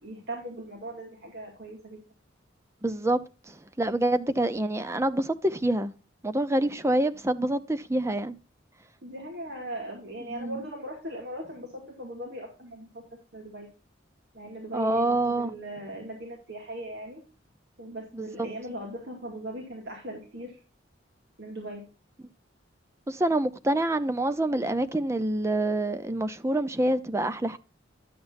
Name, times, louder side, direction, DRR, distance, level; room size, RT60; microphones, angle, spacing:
voice 1, 0.0-2.0 9.0-13.0 13.3-13.7 14.3-17.2 17.8-20.6 21.4-21.8, right 1 dB, 60° right, 2.3 m, -39 dB
voice 2, 2.8-3.2 3.5-5.9 6.2-8.4 10.3-10.6 14.7-15.5 18.1-18.5 23.1-27.6, right 1 dB, 15° right, 0.5 m, -26 dB
11.0 x 7.7 x 2.6 m
head